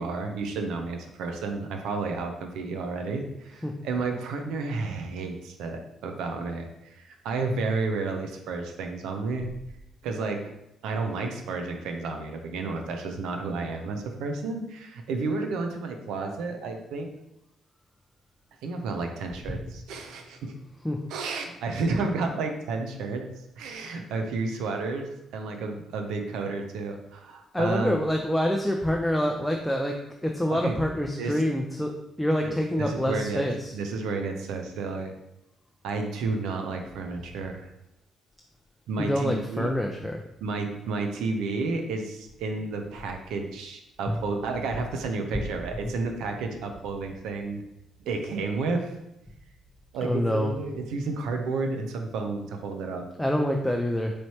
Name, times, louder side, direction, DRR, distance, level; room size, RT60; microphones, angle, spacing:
voice 1, 0.0-9.5 10.0-10.4 10.8-17.1 18.6-20.5 21.1-23.2 23.6-27.9 30.5-30.8 31.2-31.4 32.4-32.5 32.8-33.4 33.7-35.1 35.8-37.7 38.9-39.7 40.4-47.6 48.1-48.9 49.9-53.1, right 3 dB, 85° right, 4 dB, 0.5 m, -31 dB
voice 2, 27.5-30.0 30.2-31.9 32.2-33.7 39.0-40.2 44.1-44.2 50.0-50.5 53.2-54.1, equal, 5° left, 2 dB, 0.4 m, -26 dB
4.2 x 3.2 x 2.8 m, 0.86 s
cardioid pair, 80°, 0 cm